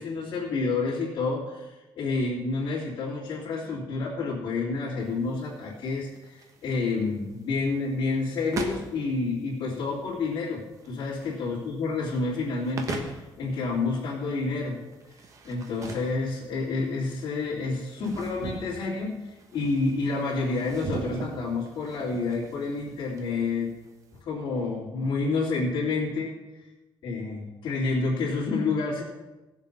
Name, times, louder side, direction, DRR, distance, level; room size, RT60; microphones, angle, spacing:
voice 1, 0.0-14.8 15.4-19.2 19.5-23.7 24.2-26.3 27.0-29.0, left 3 dB, 60° left, -8 dB, 3.1 m, -29 dB
sound 1, 5.0-24.2, right 4 dB, 40° right, 1.2 m, -41 dB
16.5 x 7.4 x 5.5 m, 1.1 s
cardioid pair, 175°, 9 cm